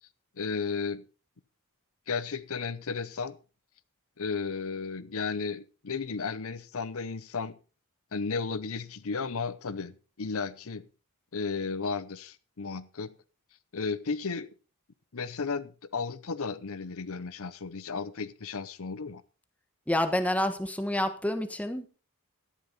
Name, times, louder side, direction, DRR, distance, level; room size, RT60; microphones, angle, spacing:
voice 1, 0.4-1.0 2.1-3.4 4.2-7.6 8.1-10.9 11.3-13.1 13.7-14.5 15.1-19.2, left 5 dB, 65° left, 0.8 m, -34 dB
voice 2, 19.9-21.9, left 1 dB, 5° left, 1.3 m, -28 dB
13.0 x 11.5 x 4.3 m
head